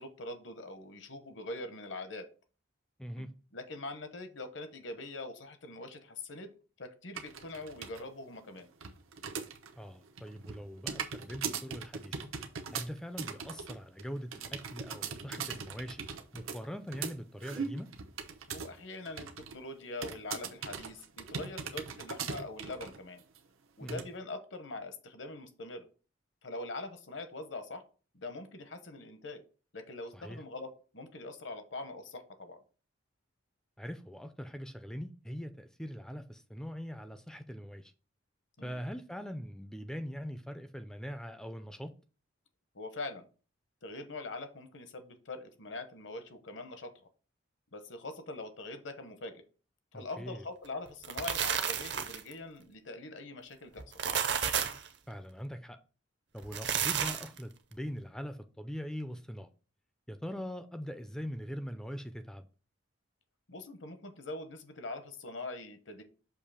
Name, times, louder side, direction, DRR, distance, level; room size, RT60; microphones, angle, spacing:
voice 1, 0.0-2.3 3.2-6.5 6.8-8.7 18.5-23.2 23.8-25.9 26.4-27.8 28.1-29.4 29.7-32.6 38.6-38.8 42.7-43.2 43.8-47.0 47.7-49.4 49.9-53.8 63.5-66.0, left 2 dB, 65° left, 1.0 m, -43 dB
voice 2, 3.0-3.3 9.8-12.2 12.7-16.1 16.3-17.9 23.8-24.0 30.1-30.4 33.8-37.9 38.6-41.9 49.9-50.4 55.1-55.8 56.3-59.5 60.1-62.5, equal, 5° left, 0.4 m, -42 dB
sound 1, 7.2-8.0 8.3-9.8 10.0-18.8 19.1-19.6 20.0-23.0 23.4-23.5 23.9-24.0, right 6 dB, 85° right, 0.8 m, -40 dB
sound 2, 50.9-52.3 53.8-54.9 56.4-57.4, right 8 dB, 55° right, 0.7 m, -32 dB
6.6 x 2.8 x 5.6 m
head